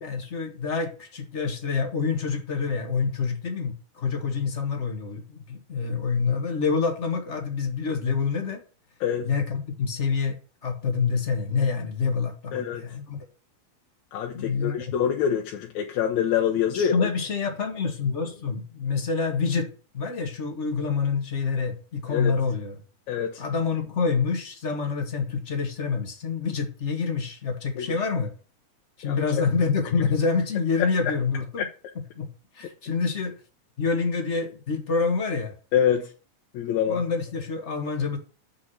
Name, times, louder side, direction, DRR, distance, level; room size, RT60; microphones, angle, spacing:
voice 1, 0.0-8.6 9.2-10.4 10.6-13.2 14.3-14.9 16.7-22.8 23.4-28.3 29.0-31.7 32.1-32.3 32.5-33.3 33.8-35.5 36.8-38.2, left 5 dB, 30° left, 1.4 m, -27 dB
voice 2, 12.5-12.8 14.1-17.1 22.1-22.3 23.1-23.4 27.8-27.9 29.1-29.2 35.7-36.1 36.5-37.0, left 9 dB, 80° left, 2.2 m, -25 dB
6.5 x 6.1 x 7.2 m
omnidirectional pair, 3.4 m